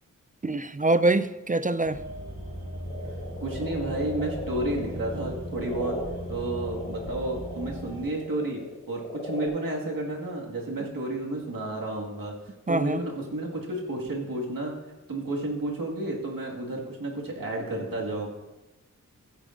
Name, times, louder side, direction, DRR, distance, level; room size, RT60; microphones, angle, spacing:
voice 1, 0.4-2.0 12.7-13.0, right 2 dB, 25° right, 13 dB, 0.4 m, -24 dB
sound 1, 1.8-8.0, equal, 55° right, 3.7 m, -38 dB
sound 2, 2.9-9.5, left 1 dB, 25° left, 3.4 m, -38 dB
voice 2, 3.4-6.0 6.3-12.3 12.7-14.8 15.1-18.3, right 1 dB, 85° right, -2 dB, 1.9 m, -31 dB
15.5 x 9.9 x 2.6 m, 1.1 s
wide cardioid pair, 60°, 33 cm